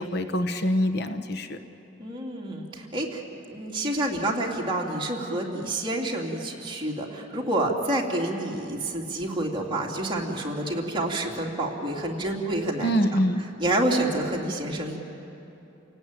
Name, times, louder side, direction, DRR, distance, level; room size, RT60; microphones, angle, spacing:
voice 1, 0.0-1.6 12.8-13.4, equal, 55° left, 9 dB, 1.1 m, -25 dB
voice 2, 2.0-3.2 3.5-13.2 13.6-15.0, right 1 dB, 25° right, -2 dB, 3.0 m, -28 dB
30.0 x 17.5 x 9.2 m, 2.9 s
head